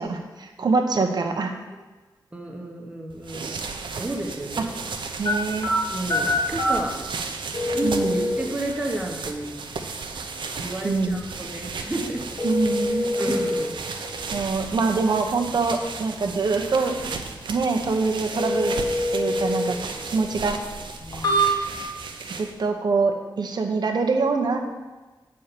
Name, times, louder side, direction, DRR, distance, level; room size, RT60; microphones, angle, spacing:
voice 1, 0.0-1.5 4.6-4.7 5.2-5.7 7.8-8.2 10.8-11.2 12.4-13.1 14.3-16.9 17.5-18.8 19.1-19.8 20.1-20.6 22.4-24.6, right 4 dB, 55° right, 3 dB, 1.0 m, -24 dB
voice 2, 2.3-3.6 3.9-4.7 5.9-7.0 7.7-9.5 10.6-12.2 13.0-13.8 21.0-21.6, right 1 dB, 15° right, 0 dB, 1.2 m, -31 dB
sound 1, 3.1-22.7, right 4 dB, 80° right, 0.7 m, -35 dB
sound 2, 5.2-22.0, equal, 55° left, 2.1 m, -28 dB
8.5 x 4.4 x 6.8 m, 1.2 s
wide cardioid pair, 150°, 8 cm